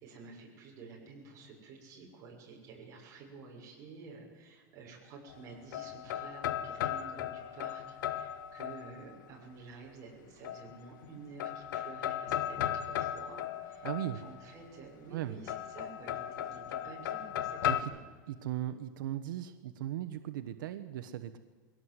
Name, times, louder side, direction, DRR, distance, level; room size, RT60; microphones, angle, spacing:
voice 1, 0.0-18.0, right 4 dB, 30° right, -2 dB, 6.7 m, -51 dB
sound 1, 5.3-9.3 10.4-11.1 11.4-14.6 15.5-17.8, left 11 dB, 70° left, 1.4 m, -36 dB
voice 2, 13.8-14.2 15.1-15.4 17.6-17.9 18.3-21.4, right 12 dB, 85° right, 9 dB, 1.1 m, -37 dB
22.0 x 17.5 x 8.0 m, 1.5 s
supercardioid pair, 165°, 11 cm